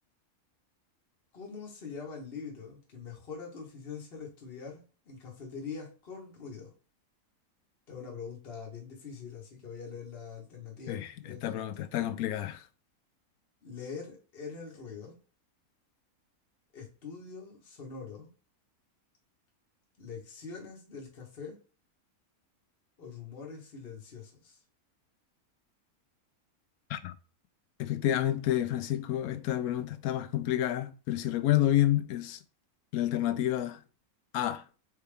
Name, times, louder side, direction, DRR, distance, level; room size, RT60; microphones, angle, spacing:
voice 1, 1.3-6.7 7.9-11.9 13.6-15.2 16.7-18.3 20.0-21.6 23.0-24.6, left 5 dB, 45° left, 1.4 m, -44 dB
voice 2, 10.9-12.7 26.9-27.1 27.8-32.4 32.9-33.8 34.3-34.6, left 13 dB, 80° left, 1.0 m, -29 dB
4.3 x 3.4 x 3.3 m
omnidirectional pair, 1.5 m